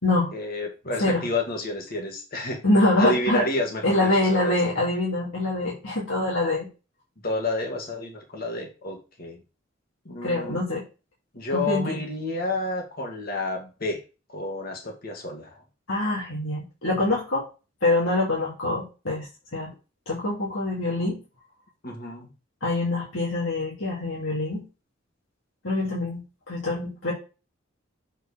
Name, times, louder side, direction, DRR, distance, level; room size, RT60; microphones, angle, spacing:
voice 1, 0.3-2.6 3.0-4.6 7.2-9.4 10.1-10.6 11.3-14.0 14.3-15.5 21.8-22.3, left 2 dB, 50° left, 2 dB, 2.1 m, -30 dB
voice 2, 2.6-3.4 3.8-6.7 10.2-10.8 11.5-12.0 15.9-17.4 17.8-19.3 19.5-19.7 20.1-21.2 22.6-24.6 25.6-27.1, left 2 dB, 90° left, -4 dB, 3.0 m, -25 dB
7.9 x 4.6 x 5.0 m, 0.31 s
head